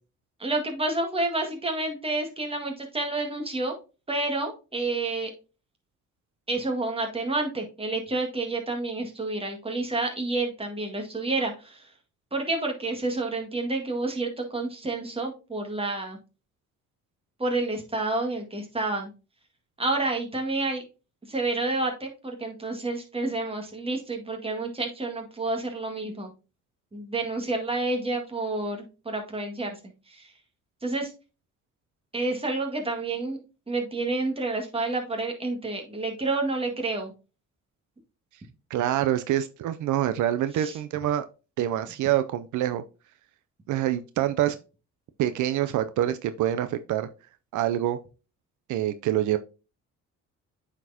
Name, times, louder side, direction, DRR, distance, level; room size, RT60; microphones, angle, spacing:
voice 1, 0.4-3.7 4.1-5.3 6.5-11.9 12.3-16.2 17.4-19.1 19.8-20.8 21.3-26.3 26.9-29.8 30.1-30.3 30.8-31.1 32.1-37.1 40.5-40.8, right 2 dB, 20° right, 2 dB, 1.7 m, -29 dB
voice 2, 38.7-41.2 41.6-42.8 43.7-44.6 45.2-47.1 47.5-48.0 48.7-49.4, right 12 dB, 75° right, 11 dB, 0.5 m, -26 dB
8.9 x 4.4 x 2.7 m, 0.32 s
cardioid pair, 90°, 30 cm